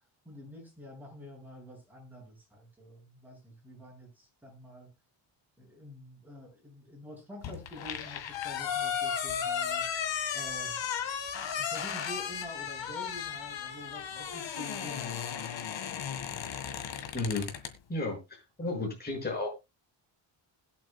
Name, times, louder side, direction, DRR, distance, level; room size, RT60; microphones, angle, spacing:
voice 1, 0.2-4.9 5.6-9.8 10.3-10.8 11.6-16.1 18.6-18.9, left 1 dB, 5° right, -2 dB, 7.7 m, -48 dB
sound 1, 7.4-17.7, left 8 dB, 70° left, 2.0 m, -35 dB
voice 2, 17.1-17.5 17.9-18.2 18.6-19.5, left 2 dB, 20° left, -2 dB, 6.2 m, -32 dB
21.0 x 8.0 x 2.3 m, 0.25 s
wide cardioid pair, 145°, 46 cm